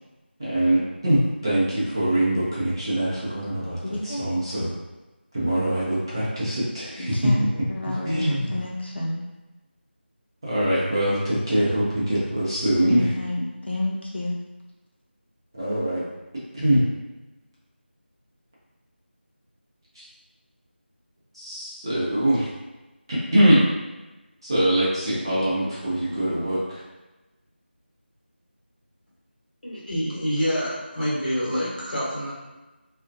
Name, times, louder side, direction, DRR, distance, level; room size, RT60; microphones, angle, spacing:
voice 1, 0.4-3.8 4.0-4.7 5.3-7.1 8.0-8.6 10.4-13.1 15.6-16.1 16.5-16.8 20.0-20.1 21.3-22.5 23.1-23.6 24.4-26.8, right 1 dB, 25° right, -8 dB, 0.5 m, -23 dB
voice 2, 3.8-4.3 4.5-4.7 7.1-7.4 7.7-9.2 12.8-14.4, left 1 dB, 70° left, -3 dB, 0.5 m, -30 dB
voice 3, 29.6-32.3, equal, 45° left, -7 dB, 1.0 m, -27 dB
2.5 x 2.1 x 2.5 m, 1.1 s
figure-of-eight pair, 170°, 6 cm